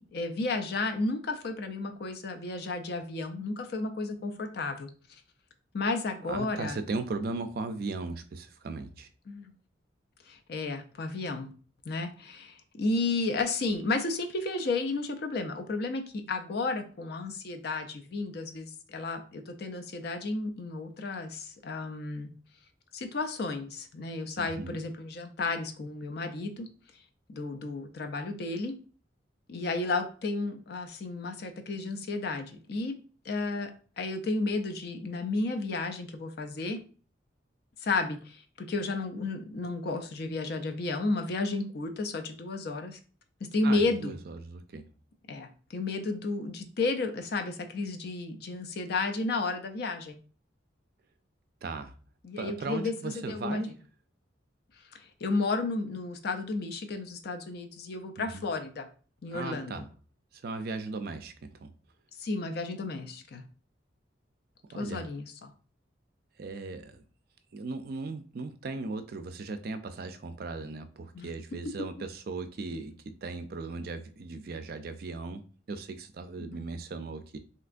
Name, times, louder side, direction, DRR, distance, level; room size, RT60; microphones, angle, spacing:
voice 1, 0.0-4.9 5.7-7.0 9.3-9.5 10.3-11.5 11.9-22.3 22.9-26.7 27.3-28.7 29.5-32.9 33.2-33.7 34.0-36.8 37.8-43.0 43.4-44.2 45.3-50.2 52.2-53.6 54.8-58.9 59.2-59.9 62.2-63.4 64.7-65.5 71.1-71.3 76.5-76.7, left 3 dB, 55° left, 0.4 m, -32 dB
voice 2, 6.3-9.1 24.4-24.8 43.6-44.8 51.6-52.0 52.4-53.7 58.2-58.5 59.3-59.9 60.3-61.7 64.7-65.1 66.4-67.0 67.5-77.4, right 3 dB, 50° right, 0.4 m, -37 dB
3.3 x 2.8 x 2.5 m
head